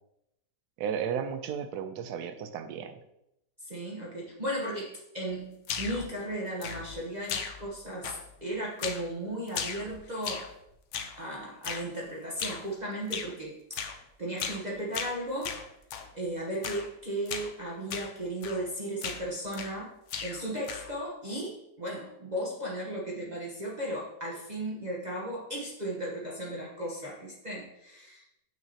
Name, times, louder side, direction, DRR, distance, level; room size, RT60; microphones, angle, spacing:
voice 1, 0.8-3.0, right 8 dB, 75° right, 9 dB, 1.0 m, -34 dB
voice 2, 3.6-10.5 11.2-13.5 14.2-15.6 16.1-19.9 20.2-28.4, right 1 dB, 30° right, -5 dB, 1.0 m, -36 dB
sound 1, 5.6-6.1 6.6-7.0 7.3-7.8 8.0-8.4 8.8-9.1 9.5-10.5 10.9-11.2 11.6-11.9 12.4-12.7 13.1-13.3 13.7-14.0 14.4-14.7 14.9-16.1 16.6-16.9 17.3-17.5 17.9-18.1 18.4-18.7 19.0-19.8 20.1-21.0, left 7 dB, 65° left, 0.7 m, -37 dB
7.3 x 5.8 x 2.8 m, 0.84 s
omnidirectional pair, 1.9 m